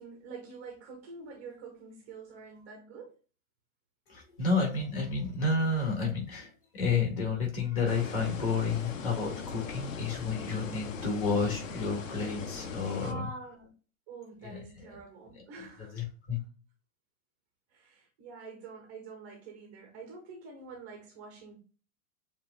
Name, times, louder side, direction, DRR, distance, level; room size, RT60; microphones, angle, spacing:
voice 1, 0.0-3.2 12.4-12.6 13.0-13.7 14.1-16.1 17.7-21.6, right 4 dB, 15° right, 0.3 m, -46 dB
voice 2, 4.1-13.3 14.4-14.6 15.9-16.4, left 4 dB, 40° left, 2.1 m, -30 dB
sound 1, 7.9-13.1, left 5 dB, 65° left, 0.7 m, -40 dB
7.0 x 2.5 x 2.4 m
figure-of-eight pair, 105°, 43 cm